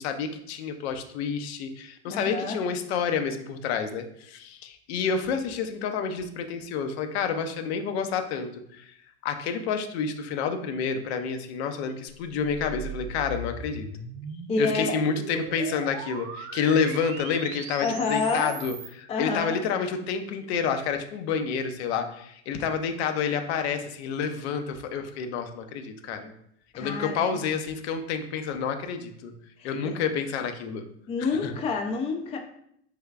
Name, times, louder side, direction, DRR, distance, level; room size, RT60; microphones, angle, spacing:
voice 1, 0.0-8.9 9.2-13.9 14.6-26.3 26.8-29.3 29.6-30.8 31.4-31.5, left 6 dB, 65° left, 7 dB, 0.6 m, -29 dB
voice 2, 2.1-2.6 14.5-15.0 17.8-18.6 19.1-19.6 26.7-27.4 29.6-29.9 31.1-32.4, left 4 dB, 20° left, 3 dB, 0.3 m, -28 dB
sound 1, 12.2-18.9, right 3 dB, 40° right, 0.5 m, -39 dB
3.3 x 3.0 x 2.3 m, 0.71 s
hypercardioid pair, 90°, 34 cm